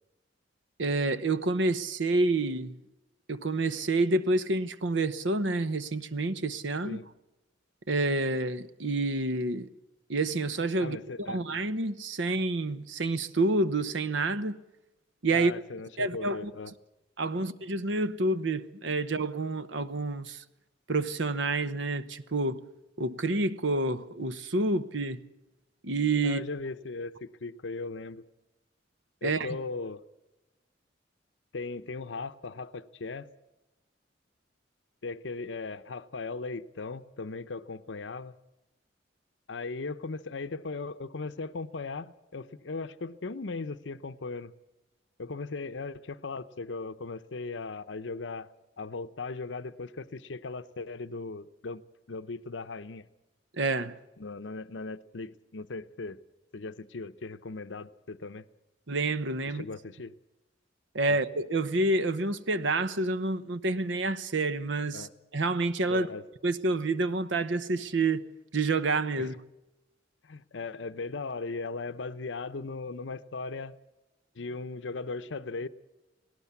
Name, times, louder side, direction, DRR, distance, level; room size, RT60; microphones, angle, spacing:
voice 1, 0.8-2.7 3.3-7.0 7.9-9.7 10.1-11.0 11.3-14.6 15.2-15.5 16.0-16.5 17.2-20.4 20.9-22.6 23.0-25.2 25.8-26.4 29.2-29.6 53.5-54.0 58.9-59.6 60.9-65.1 65.3-66.1 66.4-68.2 68.5-69.3, right 2 dB, 80° right, 1.0 m, -28 dB
voice 2, 10.8-11.4 15.3-16.7 17.3-17.5 26.2-28.2 29.2-30.0 31.5-33.3 35.0-38.3 39.5-44.5 45.2-48.5 48.8-53.1 54.2-56.2 56.5-58.5 59.5-60.1 61.1-61.2 64.9-65.1 65.9-66.2 69.2-69.3 70.2-73.7 74.4-75.7, left 3 dB, 80° left, 0.7 m, -38 dB
18.0 x 18.0 x 8.3 m
head